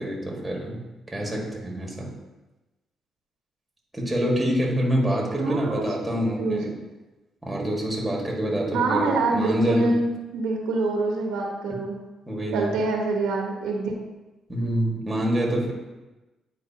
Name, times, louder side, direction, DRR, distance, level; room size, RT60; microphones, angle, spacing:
voice 1, 0.0-2.1 3.9-6.7 7.4-10.0 12.3-12.8 14.5-15.7, equal, 10° right, -1 dB, 1.7 m, -26 dB
voice 2, 5.4-5.9 6.1-6.6 8.7-12.0 12.5-14.0, right 3 dB, 90° right, 0 dB, 1.1 m, -25 dB
9.1 x 4.7 x 2.8 m, 1.1 s
cardioid pair, 90°, 0 cm